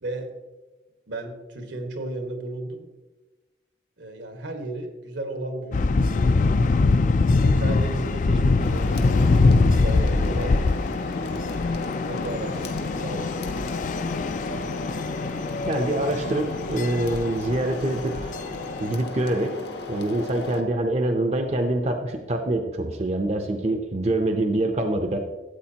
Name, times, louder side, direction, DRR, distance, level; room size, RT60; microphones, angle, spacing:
voice 1, 0.0-0.3 1.1-2.9 4.0-6.5 7.4-10.7 12.0-13.9, right 1 dB, 85° right, 4 dB, 1.5 m, -35 dB
sound 1, 5.7-19.0, left 3 dB, 45° left, 0.4 m, -23 dB
sound 2, 8.6-20.6, left 2 dB, 70° left, 1.1 m, -35 dB
voice 2, 15.7-18.3 18.8-19.6 19.9-25.2, right 1 dB, 35° right, 5 dB, 0.6 m, -25 dB
13.0 x 8.1 x 2.9 m, 1.1 s
head